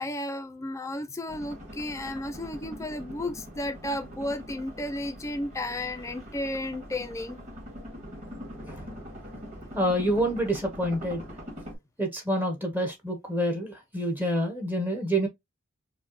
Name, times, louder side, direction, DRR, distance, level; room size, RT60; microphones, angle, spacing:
voice 1, 0.0-7.4 9.6-9.7, left 1 dB, 15° left, 0.4 m, -33 dB
sound 1, 1.3-11.8, equal, 35° right, 1.9 m, -43 dB
voice 2, 9.7-11.2 12.0-15.3, equal, 10° right, 0.8 m, -27 dB
4.9 x 2.2 x 2.9 m
head